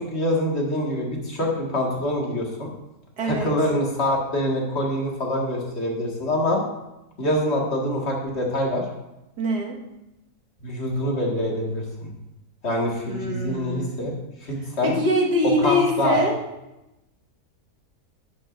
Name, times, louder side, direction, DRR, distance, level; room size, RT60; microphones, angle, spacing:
voice 1, 0.0-2.7 3.2-6.6 7.2-8.8 10.6-12.1 12.6-14.1 14.4-15.0 15.6-16.2, left 1 dB, 40° left, -1 dB, 2.1 m, -25 dB
voice 2, 3.2-3.5 9.4-9.8 13.1-13.9 14.8-16.4, equal, 80° right, -1 dB, 2.2 m, -23 dB
10.5 x 10.0 x 2.6 m, 0.94 s
omnidirectional pair, 1.7 m